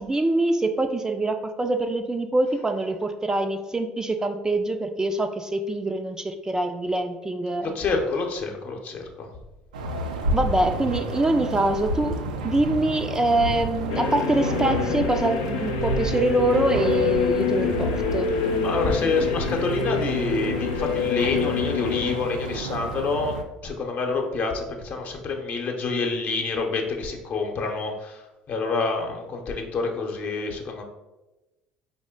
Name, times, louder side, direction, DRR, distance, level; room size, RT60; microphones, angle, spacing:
voice 1, 0.0-7.7 10.3-12.2 12.4-18.3, right 2 dB, 15° right, 6 dB, 0.4 m, -24 dB
voice 2, 7.6-9.3 18.6-23.4 23.6-28.2 28.5-30.8, left 4 dB, 50° left, 2 dB, 0.8 m, -27 dB
sound 1, 9.7-23.4, right 2 dB, 85° right, 0.4 m, -31 dB
sound 2, 13.9-22.2, left 6 dB, 75° left, 0.3 m, -27 dB
4.8 x 2.1 x 3.6 m, 1.1 s
hypercardioid pair, 60°, 4 cm